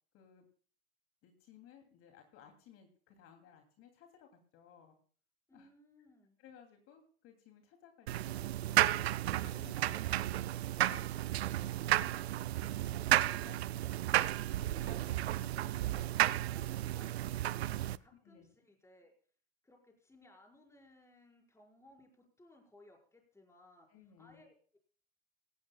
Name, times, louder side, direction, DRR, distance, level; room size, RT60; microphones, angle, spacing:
voice 1, 0.1-0.4 1.2-5.0 5.5-5.7 6.4-8.4 8.9-11.1 11.8-14.0 14.6-16.3 18.2-18.5 23.9-24.4, left 8 dB, 45° left, 4 dB, 2.8 m, -60 dB
voice 2, 5.5-6.4 13.4-13.6 14.6-14.9 16.5-19.1 19.6-23.9 24.2-24.8, left 1 dB, 10° left, 2 dB, 5.0 m, -62 dB
sound 1, 8.1-18.0, right 14 dB, 85° right, 0.6 m, -33 dB
18.0 x 15.5 x 2.3 m, 0.43 s
hypercardioid pair, 100°, 31 cm